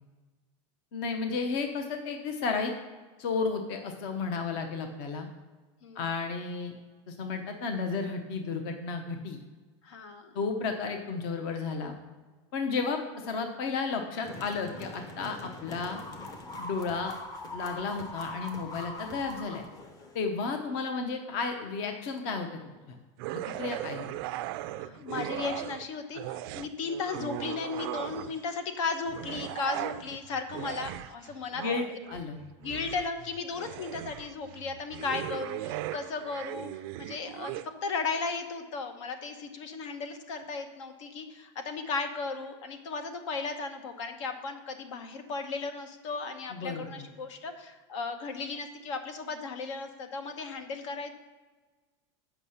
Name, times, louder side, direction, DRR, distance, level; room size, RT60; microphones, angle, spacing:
voice 1, 0.9-2.7 3.2-5.3 5.9-6.7 7.1-9.4 10.3-12.0 12.5-16.0 16.6-17.1 17.5-19.6 20.1-22.6 22.9-23.0 23.3-24.1 31.5-31.8 32.1-32.4 46.5-47.1, left 4 dB, 50° left, 5 dB, 0.8 m, -33 dB
voice 2, 9.8-10.4 23.6-23.7 24.8-31.6 32.6-36.7 37.0-37.5 37.8-51.1, left 4 dB, 75° left, 7 dB, 1.1 m, -35 dB
sound 1, 14.2-20.2, left 1 dB, 25° left, 0.7 m, -42 dB
sound 2, 23.2-25.9 26.1-28.5 29.0-37.7, right 15 dB, 50° right, 0.4 m, -38 dB
8.1 x 5.6 x 5.6 m, 1.3 s
supercardioid pair, 170°, 16 cm